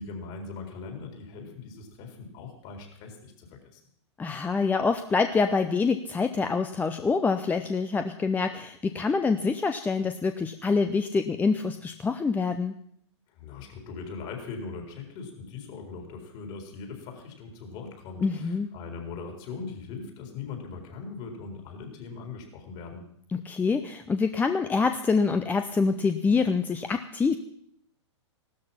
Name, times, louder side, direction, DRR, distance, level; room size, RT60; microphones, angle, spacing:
voice 1, 0.0-3.8 13.3-23.1, left 4 dB, 40° left, 3 dB, 4.3 m, -40 dB
voice 2, 4.2-12.7 18.2-18.7 23.3-27.4, left 4 dB, 10° left, 8 dB, 0.6 m, -26 dB
16.0 x 13.0 x 5.7 m, 0.69 s
hypercardioid pair, 120°, 15 cm